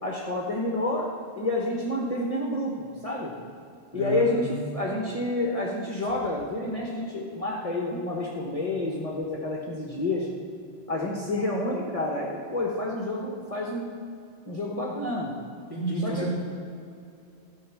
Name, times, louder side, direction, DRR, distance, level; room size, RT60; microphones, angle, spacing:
voice 1, 0.0-3.3 3.9-10.3 10.9-13.9 14.5-15.3 16.0-16.3, left 2 dB, 35° left, -3 dB, 1.3 m, -29 dB
voice 2, 3.9-4.5 15.7-16.3, right 2 dB, 20° right, -7 dB, 3.3 m, -30 dB
13.5 x 5.8 x 7.2 m, 2.5 s
omnidirectional pair, 1.1 m